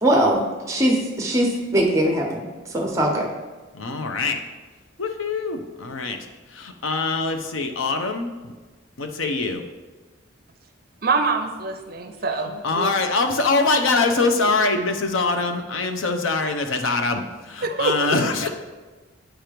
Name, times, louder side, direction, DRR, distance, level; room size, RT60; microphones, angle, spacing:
voice 1, 0.0-0.4 0.7-2.4 2.7-3.3, right 1 dB, 15° right, 1 dB, 0.9 m, -20 dB
voice 2, 3.7-4.4 5.0-6.2 6.5-8.5 9.0-9.6 12.6-18.5, left 3 dB, 90° left, 6 dB, 0.7 m, -23 dB
voice 3, 11.0-12.9 17.6-18.1, right 3 dB, 50° right, 6 dB, 0.6 m, -25 dB
8.9 x 3.0 x 5.0 m, 1.3 s
head